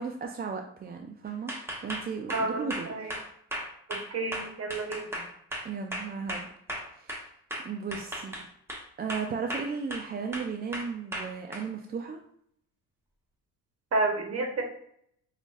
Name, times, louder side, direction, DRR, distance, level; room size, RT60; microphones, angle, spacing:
voice 1, 0.0-3.2 5.6-6.5 6.9-7.2 7.6-8.5 9.0-12.2, right 5 dB, 30° right, 3 dB, 0.4 m, -35 dB
sound 1, 1.5-7.2 7.5-8.8 9.1-10.1 10.3-11.6, equal, 5° right, 1.1 m, -36 dB
voice 2, 2.3-3.1 3.9-5.1 13.9-14.6, right 2 dB, 45° right, 2 dB, 1.1 m, -30 dB
5.0 x 2.4 x 2.5 m, 0.68 s
supercardioid pair, 70°, 35 cm